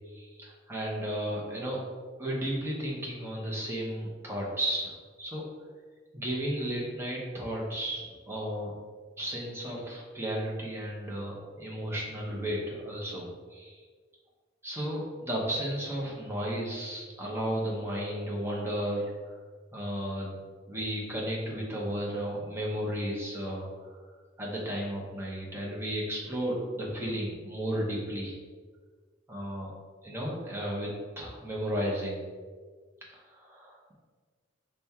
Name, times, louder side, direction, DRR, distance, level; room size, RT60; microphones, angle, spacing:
voice 1, 0.1-1.8 2.2-5.4 6.1-8.7 9.2-13.8 14.6-19.4 19.7-20.4 20.7-23.7 23.9-24.0 24.4-28.4 29.3-29.7 30.0-32.2 33.1-33.9, equal, 15° right, -4 dB, 0.9 m, -34 dB
5.2 x 2.3 x 4.2 m, 1.5 s
head